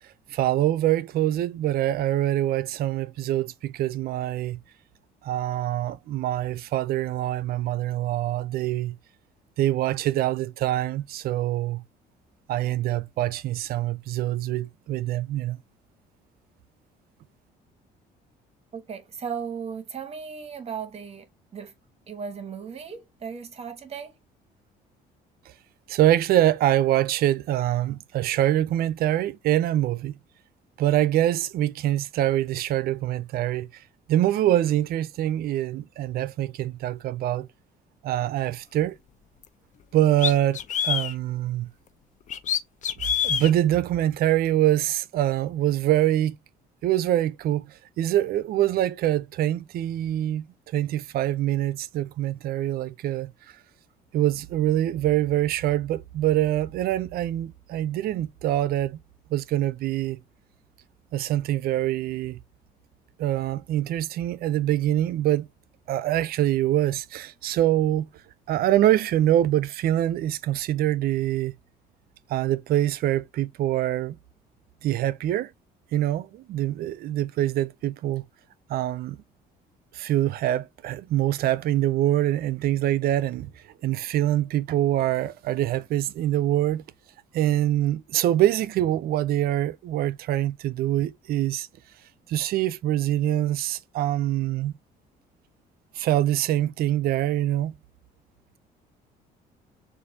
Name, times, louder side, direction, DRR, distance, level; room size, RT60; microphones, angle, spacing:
voice 1, 0.3-4.6 5.2-8.9 9.6-11.8 12.5-15.6 25.9-30.1 30.8-33.7 34.1-37.5 38.0-39.0 39.9-40.6 40.8-41.7 43.2-46.4 46.8-50.5 50.7-53.3 54.1-59.0 59.3-60.2 61.1-62.4 63.2-65.5 65.9-68.1 68.5-71.5 72.3-74.2 74.8-75.5 75.9-78.2 78.7-79.2 79.9-83.5 83.8-86.8 87.3-91.7 92.3-94.8 96.0-97.8, right 13 dB, 65° right, 0.5 m, -24 dB
voice 2, 18.7-21.7 22.1-24.2, right 6 dB, 35° right, 1.1 m, -36 dB
sound 1, 39.4-39.5 40.2-41.1 42.3-43.5, left 9 dB, 45° left, 0.5 m, -26 dB
6.4 x 2.5 x 2.7 m
cardioid pair, 110°, 17 cm